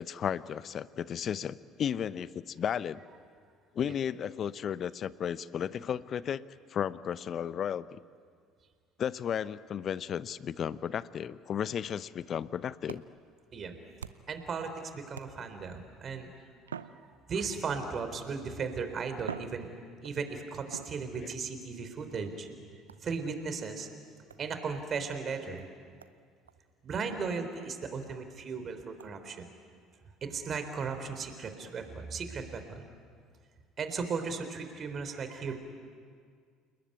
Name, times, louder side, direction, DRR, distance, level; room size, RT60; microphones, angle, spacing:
voice 1, 0.0-3.0 3.7-8.0 9.0-13.0 21.2-21.3, left 8 dB, 45° left, 17 dB, 0.8 m, -34 dB
sound 1, 12.8-14.5 15.1-15.7 16.6-17.7 18.6-18.7 19.2-20.2 20.7-21.5 22.9-23.2 24.3-24.5 25.1-25.2 25.6-25.7 26.0-26.2 26.5-26.6 27.0-27.1 27.5-27.6 28.0-28.1 29.0-29.1, right 7 dB, 85° right, 0.6 m, -46 dB
voice 2, 14.3-16.3 16.9-17.0 17.3-19.7 20.0-22.5 23.0-23.9 24.4-25.7 26.8-29.4 30.2-32.9 33.8-35.6, right 5 dB, 40° right, 8 dB, 3.8 m, -36 dB
29.5 x 20.0 x 9.5 m, 2.1 s
figure-of-eight pair, 60°, 0 cm